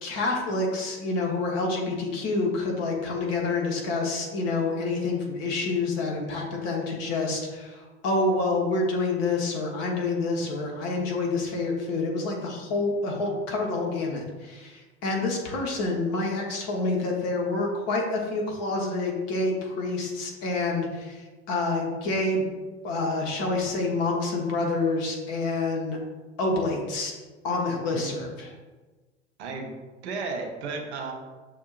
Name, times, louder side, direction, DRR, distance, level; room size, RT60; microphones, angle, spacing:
voice 1, 0.0-22.4 22.8-26.0 26.4-27.1 27.4-28.3, left 3 dB, 45° left, 0 dB, 1.1 m, -27 dB
voice 2, 27.9-28.2 29.4-29.7 30.0-31.1, right 4 dB, 70° right, 3 dB, 0.8 m, -34 dB
6.5 x 2.6 x 2.4 m, 1.3 s
figure-of-eight pair, 75°, 35 cm